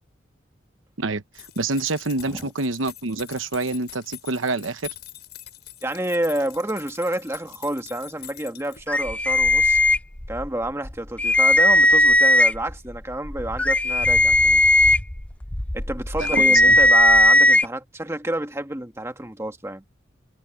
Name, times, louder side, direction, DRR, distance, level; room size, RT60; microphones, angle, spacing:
voice 1, 1.0-4.9 16.2-16.8, right 3 dB, 90° right, 1.1 m, -27 dB
sound 1, 1.3-9.1, left 13 dB, 55° left, 5.4 m, -44 dB
voice 2, 5.8-9.8 10.3-14.6 15.7-19.8, right 1 dB, 15° right, 1.6 m, -29 dB
sound 2, 8.9-10.5 10.8-10.9 11.2-12.7 13.3-17.6, left 1 dB, 5° left, 0.4 m, -17 dB
head